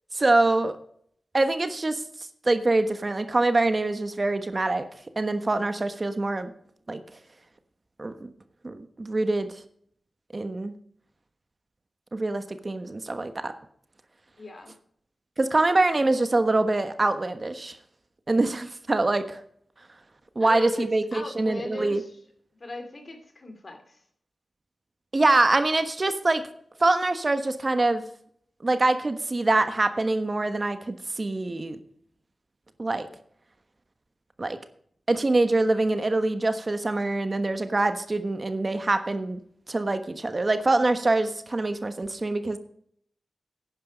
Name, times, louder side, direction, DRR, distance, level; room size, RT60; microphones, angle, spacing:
voice 1, 0.1-0.7 1.3-2.0 2.4-4.8 5.2-6.5 6.9-7.0 8.0-8.3 8.6-9.5 10.3-10.7 12.1-13.5 15.4-17.8 18.3-19.4 20.3-22.0 25.1-26.4 26.8-28.0 28.6-31.8 32.8-33.1 34.4-34.6 35.1-39.4 39.7-42.6, right 2 dB, 40° right, 9 dB, 1.2 m, -24 dB
voice 2, 14.4-14.7 20.4-22.1 22.6-24.0, left 2 dB, 55° left, 6 dB, 2.7 m, -38 dB
11.5 x 9.7 x 5.1 m, 0.64 s
cardioid pair, 45°, 0 cm